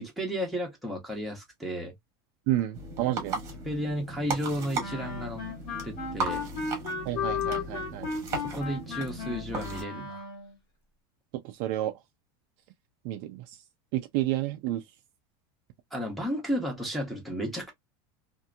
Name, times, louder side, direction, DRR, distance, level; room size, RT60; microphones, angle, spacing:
voice 1, 0.0-1.9 3.6-5.4 5.8-6.5 8.4-10.2 15.9-17.7, equal, ahead, 0.8 m, -33 dB
voice 2, 2.5-3.4 7.1-8.1 11.6-11.9 13.0-13.4 13.9-14.8, right 14 dB, 45° right, 0.3 m, -30 dB
sound 1, 2.7-9.8, right 3 dB, 25° right, 1.0 m, -37 dB
Wind instrument woodwind instrument, 4.8-10.5, left 5 dB, 40° left, 1.2 m, -35 dB
2.7 x 2.5 x 2.2 m
supercardioid pair, 180°, 12 cm